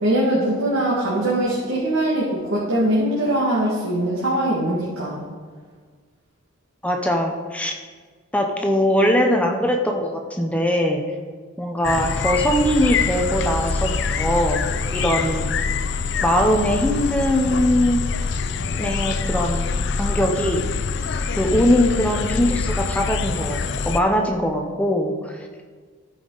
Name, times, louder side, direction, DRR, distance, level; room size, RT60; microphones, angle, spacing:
voice 1, 0.0-5.2, right 1 dB, 75° right, -6 dB, 1.8 m, -22 dB
voice 2, 6.8-7.8 8.3-11.0 11.6-14.6 14.9-15.5 16.2-18.0 18.8-19.7 20.0-20.7 21.4-23.6 23.9-25.5, equal, 5° left, 3 dB, 0.6 m, -21 dB
sound 1, 11.8-24.0, left 5 dB, 55° left, 0.4 m, -25 dB
13.5 x 5.4 x 3.9 m, 1.5 s
head